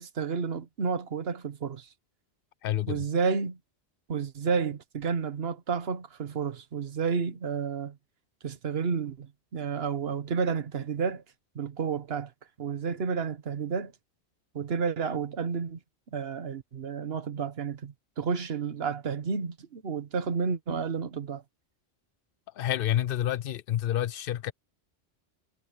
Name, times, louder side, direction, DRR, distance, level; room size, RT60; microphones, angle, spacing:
voice 1, 0.0-1.9 2.9-3.6 4.1-8.0 8.4-11.2 11.5-12.3 12.6-13.9 14.5-15.8 16.1-21.4, right 6 dB, 60° right, 1.4 m, -31 dB
voice 2, 2.6-3.1 22.5-24.5, left 12 dB, 60° left, 0.7 m, -28 dB
omnidirectional pair, 1.2 m